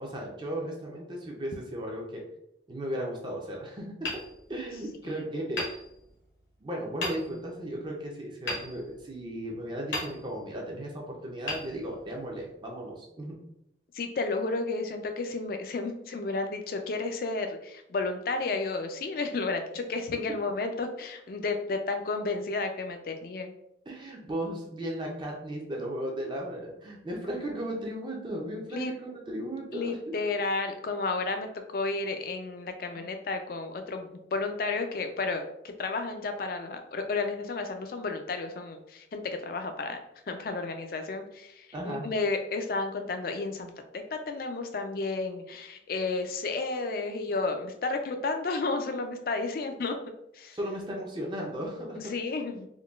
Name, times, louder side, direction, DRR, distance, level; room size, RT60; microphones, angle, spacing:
voice 1, 0.0-2.2 2.7-4.1 4.5-5.6 6.6-13.4 23.9-30.2 32.9-33.1 41.7-42.1 50.5-52.1, right 1 dB, 25° right, -1 dB, 0.5 m, -36 dB
Hammer, 4.0-5.0 5.5-6.5 7.0-7.6 8.5-9.4 9.9-10.6 11.4-12.4, left 2 dB, 80° left, 0.9 m, -37 dB
voice 2, 13.9-23.5 28.7-28.9 29.7-40.0 40.3-50.0 50.3-50.6 51.9-52.7, left 3 dB, 50° left, 6 dB, 0.3 m, -32 dB
3.7 x 2.2 x 2.3 m, 0.80 s
head